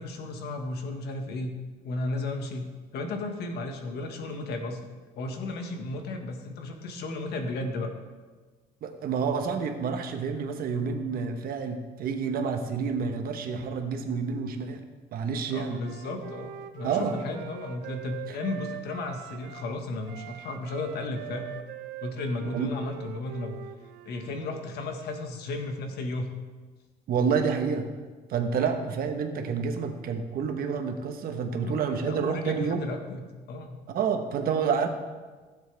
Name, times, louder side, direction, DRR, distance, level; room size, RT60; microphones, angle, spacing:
voice 1, 0.0-1.5 1.8-2.7 2.9-4.8 5.1-7.9 15.5-21.5 22.0-23.6 24.0-26.3 28.6-28.8 31.5-33.2 33.5-33.8, left 2 dB, 70° left, 4 dB, 1.6 m, -34 dB
voice 2, 8.8-14.8 15.1-15.8 16.8-17.1 18.3-18.4 22.5-22.7 27.1-27.9 28.3-32.8 33.9-34.9, right 6 dB, 60° right, 6 dB, 1.2 m, -29 dB
Wind instrument woodwind instrument, 15.7-19.7 20.0-24.3, right 12 dB, 85° right, 0.6 m, -42 dB
15.5 x 7.5 x 3.5 m, 1.4 s
cardioid pair, 110°, 17 cm